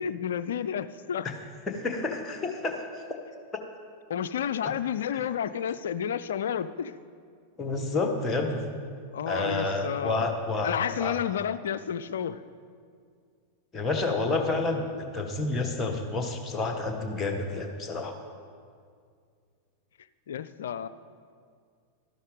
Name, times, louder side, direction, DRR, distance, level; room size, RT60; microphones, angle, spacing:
voice 1, 0.0-1.3 4.1-6.9 9.1-10.3 10.6-12.4 20.3-20.9, left 8 dB, 60° left, 14 dB, 0.3 m, -31 dB
voice 2, 1.7-2.9 5.1-5.2 7.6-8.6 9.2-10.7 11.0-11.2 13.7-18.1, left 3 dB, 15° left, 4 dB, 1.3 m, -29 dB
12.5 x 11.5 x 3.9 m, 2.2 s
figure-of-eight pair, 90°, 0 cm